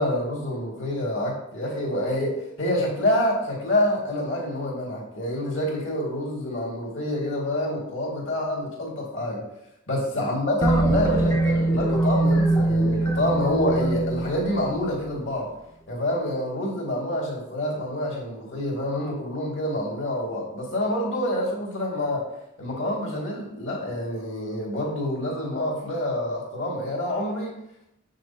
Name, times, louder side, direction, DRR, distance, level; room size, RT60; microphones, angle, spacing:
voice 1, 0.0-9.4 9.9-15.5 15.9-22.3 22.6-27.5, left 1 dB, 65° left, -3 dB, 2.1 m, -27 dB
sound 1, 10.6-15.3, right 2 dB, 15° left, 0.6 m, -23 dB
6.7 x 6.4 x 2.8 m, 0.82 s
head